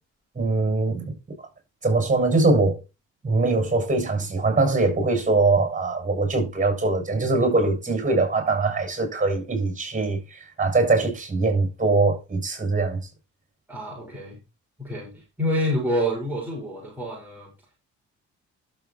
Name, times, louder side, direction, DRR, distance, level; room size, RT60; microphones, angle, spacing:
voice 1, 0.3-1.1 1.8-2.8 3.2-13.0, right 3 dB, 25° right, 7.5 m, -22 dB
voice 2, 13.7-14.4 14.8-17.5, equal, 5° right, 4.8 m, -28 dB
12.0 x 8.1 x 3.0 m
cardioid pair, 90°, 30 cm